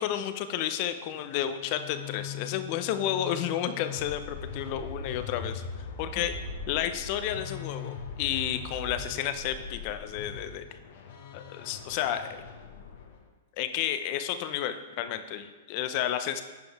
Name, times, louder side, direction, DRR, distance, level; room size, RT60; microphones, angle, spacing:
voice 1, 0.0-5.6 6.0-6.4 6.7-10.7 11.3-12.4 13.6-16.4, left 10 dB, 50° left, 10 dB, 0.6 m, -31 dB
sound 1, 1.4-13.2, left 5 dB, 65° left, 1.0 m, -41 dB
10.5 x 5.2 x 3.5 m, 1.3 s
hypercardioid pair, 120°, 0 cm